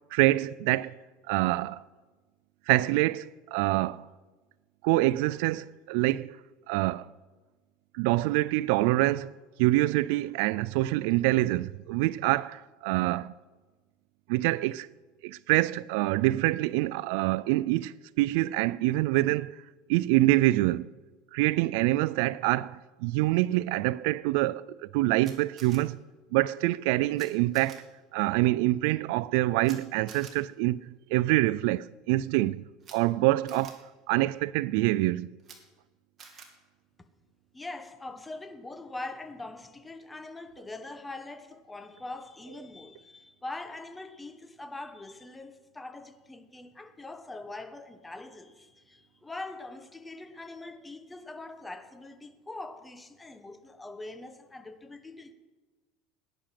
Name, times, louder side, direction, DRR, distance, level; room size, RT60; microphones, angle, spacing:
voice 1, 0.1-0.9 1.3-1.8 2.7-4.1 4.8-6.4 6.7-7.1 7.9-9.3 9.6-13.3 14.3-14.9 15.2-19.6 19.9-20.9 21.3-26.0 26.3-27.8 28.1-32.6 32.9-33.8 34.1-35.3, right 18 dB, 75° right, 0.3 m, -26 dB
Camera, 25.2-25.8 27.2-27.3 27.5-27.8 29.6-29.8 30.1-30.3 32.8-32.9 33.5-33.7 35.4-35.6 36.2-36.5, right 6 dB, 35° right, 2.7 m, -48 dB
voice 2, 37.5-55.3, left 2 dB, 10° left, 1.3 m, -43 dB
18.0 x 10.5 x 5.8 m
supercardioid pair, 125°, 0 cm